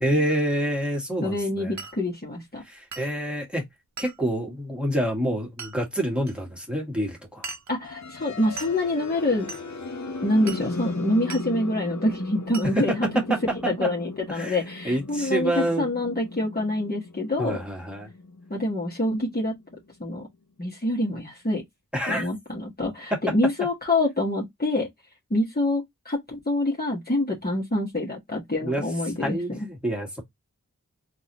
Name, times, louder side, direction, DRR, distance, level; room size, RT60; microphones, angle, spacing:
voice 1, 0.0-1.7 2.7-3.6 4.0-7.5 12.6-13.0 13.3-13.4 13.8-13.9 14.3-14.6 14.8-15.9 17.4-18.1 21.9-22.3 28.6-28.8 29.2-30.2, right 1 dB, 5° right, 1.7 m, -27 dB
voice 2, 1.2-2.6 7.7-9.5 10.2-13.1 13.6-17.6 18.5-19.5 20.0-20.3 20.6-21.6 22.1-24.9 25.3-29.7, left 1 dB, 30° left, 1.4 m, -26 dB
Glass, 1.8-2.0 2.9-3.1 4.0-4.2 5.6-5.8 6.3-6.4 7.4-7.8 8.6-8.8 9.5-9.7 10.5-10.7 11.3-11.5 12.5-12.7, right 4 dB, 60° right, 0.7 m, -38 dB
sound 1, 7.8-19.7, left 3 dB, 60° left, 0.8 m, -37 dB
3.8 x 2.6 x 2.9 m
wide cardioid pair, 50°, 32 cm